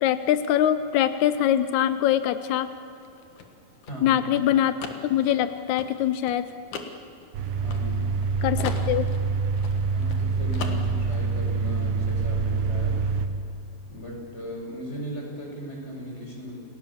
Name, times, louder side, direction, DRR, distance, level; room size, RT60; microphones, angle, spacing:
voice 1, 0.0-2.7 4.0-4.8 5.0-6.5 8.4-9.0, left 11 dB, 85° left, 12 dB, 1.6 m, -23 dB
sound 1, 3.0-8.3 8.6-10.2 10.5-11.2, left 6 dB, 60° left, 2.8 m, -39 dB
voice 2, 3.9-4.2 7.6-8.1 8.5-8.9 9.9-13.0 13.9-16.6, equal, 15° left, -1 dB, 5.7 m, -37 dB
sound 2, 7.3-13.3, right 4 dB, 85° right, 3.3 m, -26 dB
28.5 x 19.0 x 7.2 m, 2.7 s
omnidirectional pair, 4.3 m